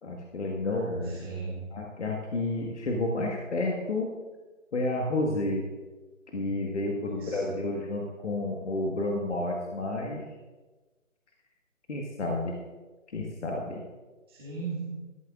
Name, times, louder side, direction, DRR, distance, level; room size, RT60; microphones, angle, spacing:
voice 1, 0.0-1.2 1.7-4.1 4.7-5.6 6.3-10.2 11.9-12.6 13.1-13.8, left 2 dB, 60° left, 0 dB, 1.6 m, -30 dB
voice 2, 0.6-1.6 7.0-7.5 14.3-14.9, right 4 dB, 20° right, -7 dB, 2.0 m, -38 dB
14.5 x 13.0 x 2.5 m, 1.2 s
hypercardioid pair, 165°, 40 cm